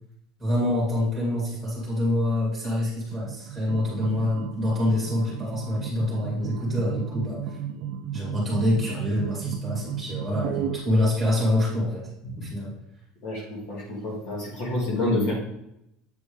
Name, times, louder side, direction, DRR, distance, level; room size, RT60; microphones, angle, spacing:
voice 1, 0.4-7.6 8.1-12.0 12.4-12.7, left 1 dB, ahead, -7 dB, 2.7 m, -26 dB
sound 1, 3.1-10.8, right 8 dB, 55° right, 0.5 m, -34 dB
voice 2, 13.2-15.3, left 1 dB, 50° left, -2 dB, 1.9 m, -28 dB
8.0 x 4.3 x 3.4 m, 0.80 s
cardioid pair, 170°, 0 cm